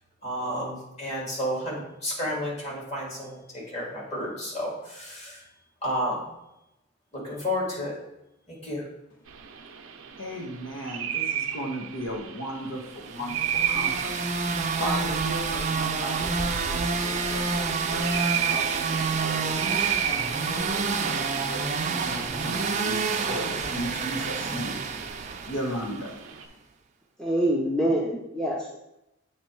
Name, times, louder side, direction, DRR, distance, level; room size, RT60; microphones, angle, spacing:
voice 1, 0.2-5.4 5.8-6.3 7.1-7.9 8.5-8.8, equal, 35° left, -5 dB, 2.4 m, -31 dB
sound 1, 9.3-26.5, right 9 dB, 85° right, 0.5 m, -34 dB
voice 2, 10.2-19.5 20.0-26.6, equal, 75° left, 0 dB, 1.1 m, -36 dB
sound 2, 13.1-26.0, right 4 dB, 35° right, 0.5 m, -28 dB
voice 3, 27.2-28.8, right 1 dB, 5° left, -3 dB, 0.7 m, -25 dB
8.4 x 3.0 x 4.6 m, 0.89 s
head